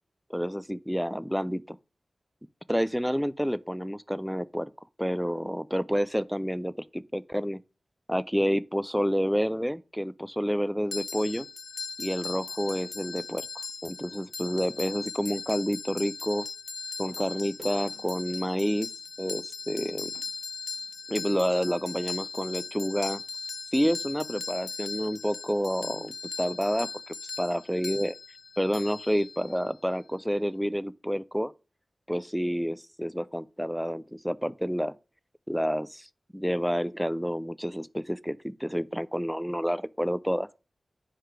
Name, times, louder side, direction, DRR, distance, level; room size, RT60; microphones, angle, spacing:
voice 1, 0.3-1.8 2.7-4.7 5.0-7.6 8.1-11.5 12.0-13.5 13.8-16.4 17.0-18.9 19.2-20.1 21.1-23.2 23.7-28.1 28.6-31.5 32.1-34.9 35.5-36.1 36.3-40.6, equal, ahead, 0.3 m, -29 dB
sound 1, 10.9-29.7, left 4 dB, 85° left, 0.4 m, -39 dB
sound 2, 13.5-13.8 15.5-15.6 17.1-21.5 22.3-22.4 22.6-22.7 23.3-23.4, right 1 dB, 40° right, 1.3 m, -56 dB
5.0 x 4.7 x 4.5 m
cardioid pair, 45°, 0 cm